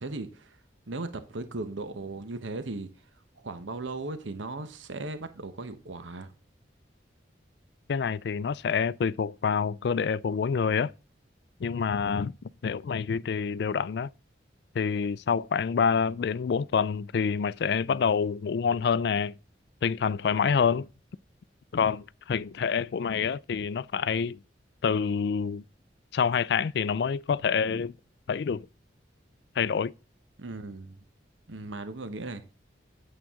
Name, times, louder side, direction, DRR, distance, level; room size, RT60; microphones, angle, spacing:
voice 1, 0.0-0.6 0.9-3.1 3.4-6.3 30.4-31.0 31.5-32.4, right 2 dB, 85° right, 1.0 m, -37 dB
voice 2, 7.9-10.9 11.6-12.3 12.6-14.1 14.7-19.3 19.8-20.9 21.7-24.4 24.8-25.6 26.1-27.9 28.3-28.7 29.6-29.9, left 6 dB, 60° left, 0.3 m, -27 dB
8.8 x 7.5 x 3.6 m
head